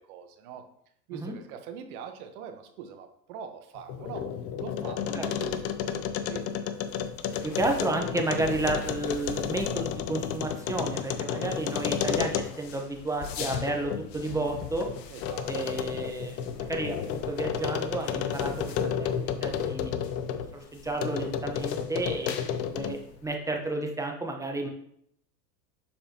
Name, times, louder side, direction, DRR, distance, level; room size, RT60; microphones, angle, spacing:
voice 1, 0.1-0.7 1.1-4.3 4.6-6.7 15.1-15.5, right 7 dB, 60° right, 7 dB, 1.1 m, -43 dB
sound 1, 3.8-12.7 13.2-20.5 21.0-23.1, left 8 dB, 30° left, 0.5 m, -32 dB
sound 2, 5.9-23.7, left 7 dB, 80° left, 0.9 m, -46 dB
voice 2, 7.4-14.9 15.5-18.7 19.0-19.9 20.5-24.7, right 2 dB, 5° right, 3 dB, 0.9 m, -32 dB
7.0 x 4.9 x 2.9 m, 0.71 s
hypercardioid pair, 100°, 49 cm